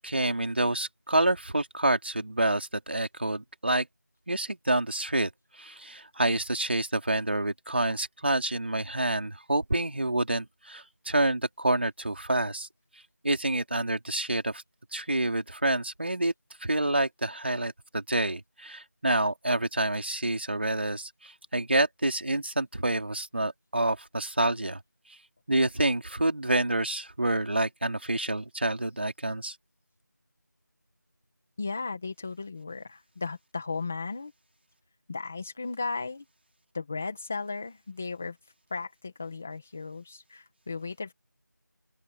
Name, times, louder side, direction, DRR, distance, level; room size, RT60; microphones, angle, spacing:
voice 1, 0.0-3.9 4.3-5.3 5.6-12.7 13.2-14.6 14.9-16.3 16.6-24.8 25.1-25.2 25.5-29.6, right 1 dB, 35° right, 3.9 m, -28 dB
voice 2, 31.6-34.3 35.1-36.2 36.7-41.1, left 4 dB, 5° left, 1.4 m, -36 dB
open air
figure-of-eight pair, 180°, 10 cm